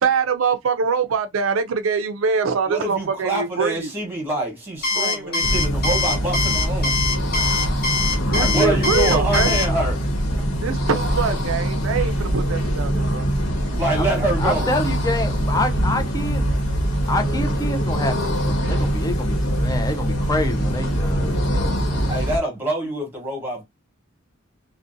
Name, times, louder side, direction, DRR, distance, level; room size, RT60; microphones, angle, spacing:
voice 1, 0.0-3.9 4.9-5.4 8.3-9.6 10.6-13.3, right 5 dB, 75° right, 0.4 m, -23 dB
voice 2, 2.7-7.0 8.0-10.1 12.5-12.6 13.8-14.7 22.1-23.6, right 1 dB, 10° right, 1.1 m, -26 dB
Alarm, 4.8-9.7, left 4 dB, 50° left, 0.9 m, -23 dB
sound 1, 5.4-22.4, equal, 75° left, 1.0 m, -23 dB
voice 3, 8.3-8.9 14.0-14.1 14.4-16.4 17.1-22.2, left 1 dB, 20° left, 0.4 m, -27 dB
2.6 x 2.1 x 2.5 m
head